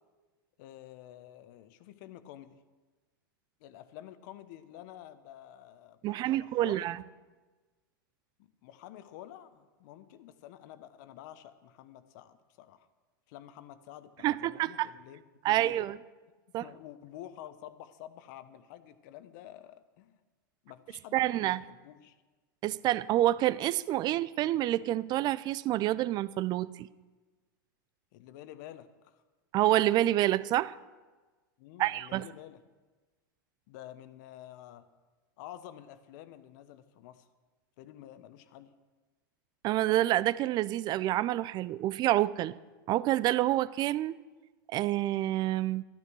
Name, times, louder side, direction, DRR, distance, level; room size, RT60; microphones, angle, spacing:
voice 1, 0.6-2.6 3.6-6.9 8.4-12.9 13.3-15.9 16.6-20.2 20.6-22.2 28.1-29.2 31.6-32.6 33.7-34.9 35.4-37.3 37.8-38.7, left 12 dB, 60° left, 12 dB, 1.0 m, -50 dB
voice 2, 6.0-7.0 14.2-14.9 15.4-16.0 16.5-16.7 21.1-21.6 22.6-26.9 29.5-30.7 31.8-32.2 39.6-42.5 42.9-44.2 44.7-45.8, right 14 dB, 35° right, 18 dB, 0.5 m, -28 dB
12.0 x 11.0 x 6.2 m, 1.3 s
hypercardioid pair, 105°, 12 cm